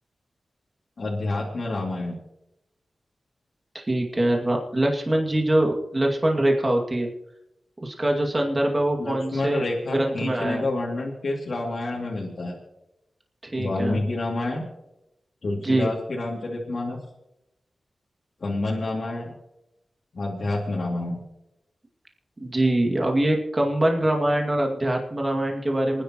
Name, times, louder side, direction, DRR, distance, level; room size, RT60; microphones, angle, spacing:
voice 1, 1.0-2.2 9.0-12.6 13.5-14.6 15.4-17.0 18.4-19.3 20.1-21.2, left 2 dB, 70° left, -4 dB, 2.6 m, -28 dB
voice 2, 3.7-7.1 7.8-9.6 9.9-10.7 13.5-14.0 15.6-15.9 22.4-26.0, right 1 dB, 30° right, 1 dB, 2.3 m, -23 dB
27.0 x 10.0 x 3.0 m, 0.88 s
cardioid pair, 55°, 0 cm